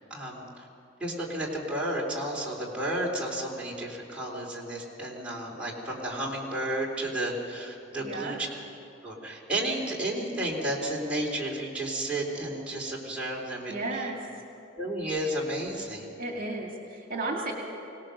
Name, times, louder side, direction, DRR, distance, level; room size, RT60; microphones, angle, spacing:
voice 1, 0.1-0.7 1.0-8.5 9.0-14.1 14.8-16.1, right 1 dB, 5° right, -4 dB, 3.7 m, -32 dB
voice 2, 8.0-8.4 13.7-14.2 16.2-17.5, right 2 dB, 50° right, 0 dB, 2.2 m, -33 dB
24.5 x 18.0 x 6.6 m, 2.8 s
head